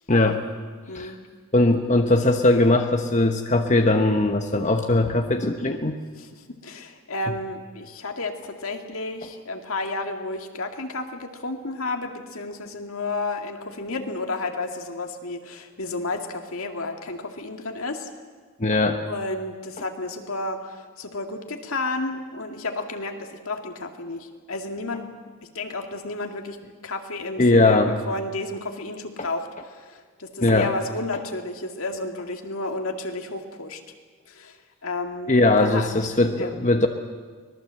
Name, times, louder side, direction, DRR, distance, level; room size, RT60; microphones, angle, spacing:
voice 1, 0.1-0.4 0.9-1.1 1.5-6.0 18.6-19.0 27.4-27.9 30.4-30.7 35.3-36.9, left 2 dB, 35° left, 4 dB, 1.0 m, -20 dB
voice 2, 0.9-1.2 1.9-2.1 6.2-18.1 19.0-25.1 25.4-26.6 26.8-33.8 34.3-35.9 36.4-36.5, left 2 dB, 70° left, 4 dB, 2.2 m, -32 dB
24.5 x 19.5 x 7.7 m, 1.5 s
head